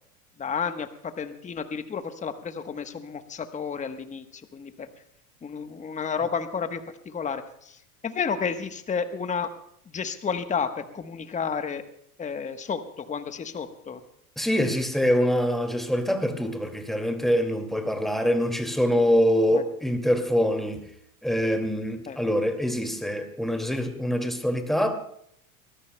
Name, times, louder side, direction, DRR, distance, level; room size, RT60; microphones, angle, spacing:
voice 1, 0.4-4.9 5.4-7.8 8.0-9.5 9.9-11.8 12.2-14.0 19.5-19.6 22.1-22.2, left 6 dB, 15° left, 1.2 m, -31 dB
voice 2, 14.4-20.8 21.2-25.0, equal, ahead, 2.3 m, -24 dB
23.5 x 19.5 x 2.3 m
hypercardioid pair, 95°, 45 cm